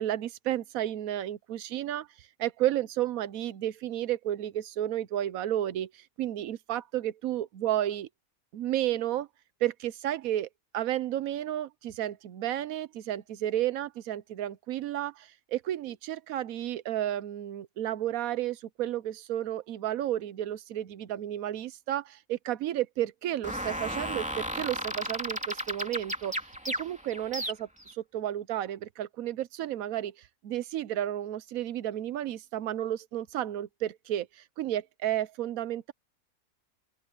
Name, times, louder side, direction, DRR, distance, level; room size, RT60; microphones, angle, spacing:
voice 1, 0.0-2.1 2.4-8.1 8.5-9.3 9.6-10.5 10.7-26.3 26.8-30.1 30.4-35.9, right 12 dB, 80° right, 1.2 m, -32 dB
sound 1, 23.4-27.9, equal, 5° right, 3.0 m, -34 dB
open air
omnidirectional pair, 1.5 m